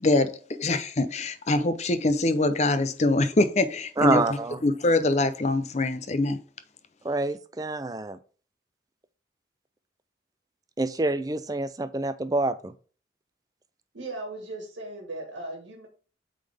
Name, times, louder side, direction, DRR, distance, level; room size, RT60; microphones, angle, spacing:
voice 1, 0.0-4.2 4.6-6.4, left 2 dB, 35° left, 0.6 m, -24 dB
voice 2, 4.0-4.6 7.0-8.2 10.8-12.7, right 2 dB, 20° right, 0.4 m, -27 dB
voice 3, 13.9-15.9, right 2 dB, 85° right, 1.6 m, -37 dB
8.5 x 3.8 x 3.4 m
head